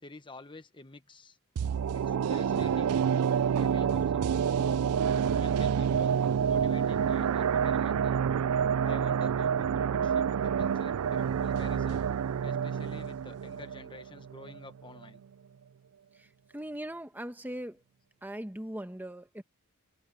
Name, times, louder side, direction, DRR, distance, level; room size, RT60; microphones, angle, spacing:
voice 1, 0.0-1.4 1.9-3.0 3.5-4.8 5.3-6.1 6.5-8.2 8.8-12.1 12.4-15.2, left 2 dB, 20° left, 1.3 m, -49 dB
sound 1, 1.6-14.6 15.0-15.1, right 7 dB, 80° right, 0.4 m, -28 dB
voice 2, 16.5-17.8 18.2-19.4, right 1 dB, 10° right, 1.2 m, -39 dB
head